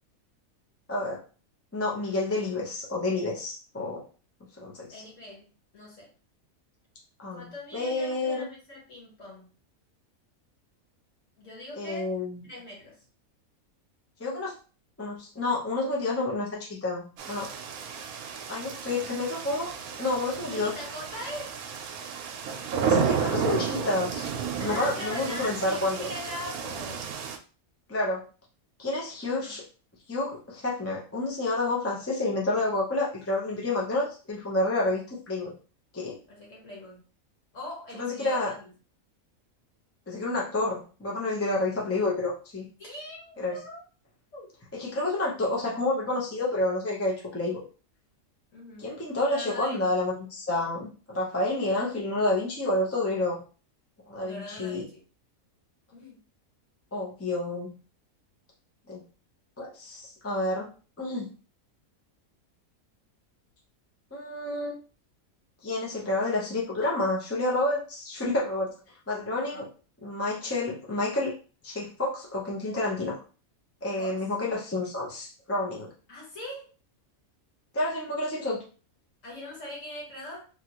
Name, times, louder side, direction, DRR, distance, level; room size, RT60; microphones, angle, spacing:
voice 1, 0.9-1.2 1.7-4.0 4.6-4.9 7.2-8.5 11.8-12.4 14.2-14.5 15.0-17.5 18.5-19.7 20.0-20.7 22.9-24.3 24.6-26.1 27.9-28.2 28.8-29.6 30.1-35.5 35.9-36.2 38.0-38.5 40.1-42.7 43.4-43.6 44.7-47.6 48.8-53.4 54.1-54.8 56.9-57.7 58.9-59.0 59.6-60.7 61.0-61.3 64.1-64.8 65.6-68.7 69.1-69.7 70.0-71.3 71.6-73.1 73.8-75.9 77.7-78.6, left 2 dB, 15° left, -3 dB, 0.6 m, -29 dB
voice 2, 4.9-6.1 7.3-9.5 11.4-12.1 12.4-13.0 20.5-21.6 23.2-23.6 24.6-27.1 29.3-29.6 36.3-37.0 37.5-38.7 42.8-43.8 44.3-44.5 48.5-48.9 49.3-49.9 54.2-55.0 55.9-56.2 69.3-69.7 74.0-74.2 76.1-76.7 79.2-80.5, left 1 dB, 60° left, -3 dB, 1.7 m, -42 dB
sound 1, 17.2-27.4, right 6 dB, 90° right, 1.0 m, -32 dB
3.6 x 2.4 x 2.9 m, 0.36 s
omnidirectional pair, 1.5 m